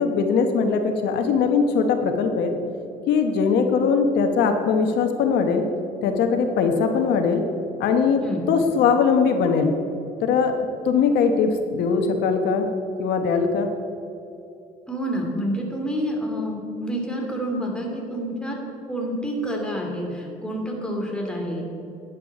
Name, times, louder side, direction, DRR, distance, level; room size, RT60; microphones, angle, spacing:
voice 1, 0.0-2.5 3.1-5.6 6.0-7.4 7.8-8.2 8.5-9.7 10.2-10.5 10.8-12.7 13.0-13.7, left 5 dB, 80° left, 5 dB, 1.0 m, -20 dB
voice 2, 14.9-18.6 18.9-21.7, equal, 5° left, -1 dB, 2.6 m, -28 dB
11.5 x 10.0 x 4.9 m, 2.8 s
cardioid pair, 110°, 17 cm